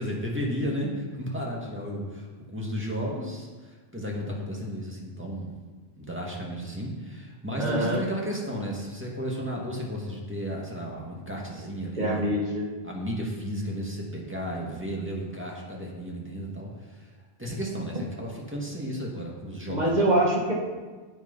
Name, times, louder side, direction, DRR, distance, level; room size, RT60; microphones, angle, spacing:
voice 1, 0.0-5.5 6.0-12.3 12.8-17.1 17.4-20.1, equal, 10° right, -3 dB, 2.1 m, -33 dB
voice 2, 7.5-8.0 12.0-12.6 19.7-20.5, right 1 dB, 40° right, -2 dB, 2.1 m, -24 dB
9.3 x 8.6 x 5.5 m, 1.4 s
omnidirectional pair, 1.1 m